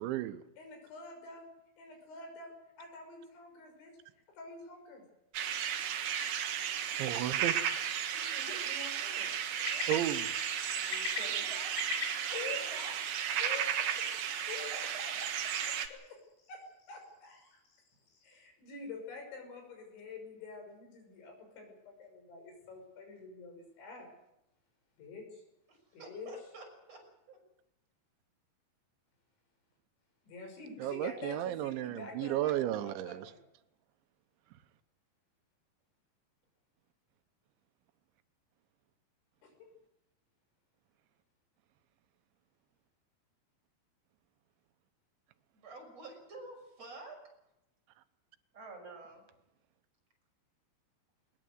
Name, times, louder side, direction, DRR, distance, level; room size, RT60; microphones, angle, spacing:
voice 1, 0.0-0.4 7.0-7.8 9.9-10.3 30.8-33.3, right 13 dB, 90° right, 12 dB, 3.4 m, -34 dB
voice 2, 0.6-1.4 1.8-2.5 2.8-3.9 4.4-5.0 8.1-9.3 10.9-11.5 12.3-12.9 13.4-13.9 14.5-14.7 15.0-15.1 15.9-16.0 16.5-17.6 18.2-24.1 25.0-25.4 25.9-26.3 30.3-33.4 39.4-39.7, left 4 dB, 85° left, 4 dB, 8.2 m, -47 dB
sound 1, 5.3-15.9, right 8 dB, 60° right, 2.8 m, -34 dB
voice 3, 9.5-10.0 11.1-11.7 12.3-13.0 14.7-15.5 20.4-20.5 25.7-27.0 27.3-27.4 45.5-47.2 48.5-49.2, right 2 dB, 35° right, 1 dB, 7.1 m, -50 dB
sound 2, 9.6-18.5, left 5 dB, 65° left, 5.7 m, -47 dB
21.5 x 20.5 x 7.9 m, 0.85 s
omnidirectional pair, 5.1 m